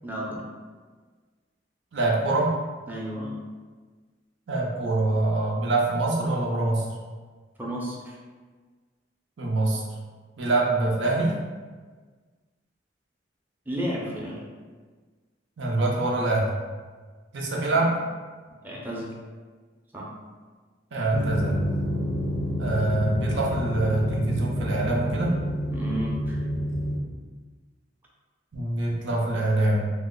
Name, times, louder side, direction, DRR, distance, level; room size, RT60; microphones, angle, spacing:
voice 1, 0.0-0.4 2.9-3.3 7.6-8.2 13.7-14.4 17.6-17.9 18.6-19.1 19.9-20.1 25.7-26.4, equal, 10° right, -5 dB, 0.5 m, -33 dB
voice 2, 1.9-2.5 4.5-6.8 9.4-9.8 10.4-11.4 15.6-16.5 17.3-18.0 20.9-21.6 22.6-25.4 28.5-29.9, right 2 dB, 85° right, -3 dB, 0.6 m, -24 dB
pianino strings, 21.1-27.0, equal, 40° left, 0.3 m, -28 dB
3.0 x 2.0 x 3.7 m, 1.4 s
head